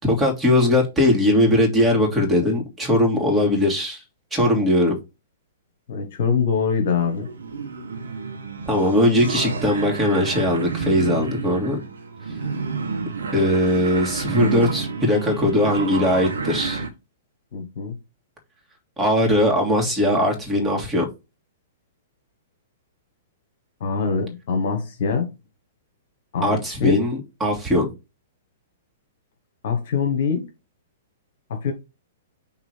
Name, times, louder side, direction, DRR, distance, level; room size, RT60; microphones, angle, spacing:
voice 1, 0.0-4.0 4.3-4.9 8.7-11.8 13.3-16.8 19.0-21.1 26.4-27.9, left 1 dB, 10° right, 2.8 m, -20 dB
voice 2, 5.9-7.3 17.5-17.9 23.8-25.3 26.3-27.0 29.6-30.5 31.5-31.7, left 5 dB, 55° left, 1.5 m, -23 dB
sound 1, 6.6-16.9, right 5 dB, 70° right, 1.3 m, -30 dB
6.0 x 3.7 x 4.5 m
figure-of-eight pair, 110°, 0 cm